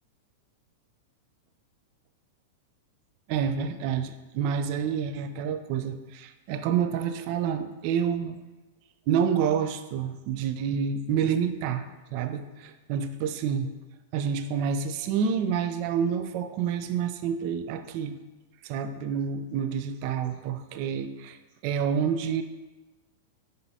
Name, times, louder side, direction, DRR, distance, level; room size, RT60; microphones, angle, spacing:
voice 1, 3.3-8.4 9.1-13.7 14.1-18.2 18.6-21.4 21.6-22.4, right 7 dB, 50° right, 9 dB, 0.3 m, -28 dB
6.7 x 2.7 x 2.7 m, 1.1 s
hypercardioid pair, 105°, 0 cm